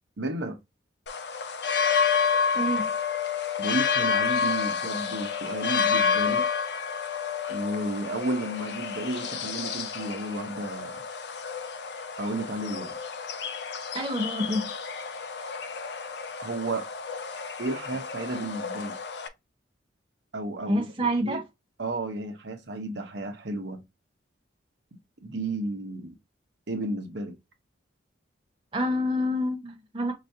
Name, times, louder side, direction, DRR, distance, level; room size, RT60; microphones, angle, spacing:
voice 1, 0.2-0.6 3.6-6.4 7.5-11.0 12.2-12.9 16.4-16.9 17.6-19.0 20.3-21.4 21.8-23.8 25.2-26.1 26.7-27.3, right 2 dB, 60° right, 0.9 m, -32 dB
sound 1, 1.1-19.3, left 6 dB, 55° left, 0.5 m, -30 dB
voice 2, 2.5-2.9 13.9-14.7 20.7-21.4 28.7-30.1, equal, 25° right, 0.8 m, -27 dB
5.6 x 2.9 x 2.7 m
head